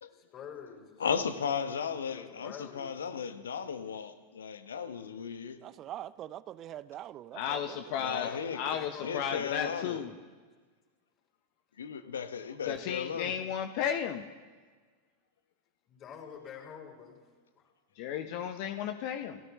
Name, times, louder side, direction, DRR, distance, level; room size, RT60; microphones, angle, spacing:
voice 1, 0.1-1.6 1.9-3.5 8.2-9.6 15.9-17.2 17.6-17.7, left 7 dB, 35° left, 5.7 m, -48 dB
voice 2, 1.0-5.6 8.0-8.6 9.0-10.0 11.8-13.3, left 6 dB, 75° left, 1.2 m, -35 dB
voice 3, 5.6-8.3, right 12 dB, 35° right, 0.6 m, -44 dB
voice 4, 7.3-10.1 12.6-14.2 18.0-19.4, left 9 dB, 55° left, 1.0 m, -34 dB
29.5 x 15.0 x 3.2 m
figure-of-eight pair, 90°, 0 cm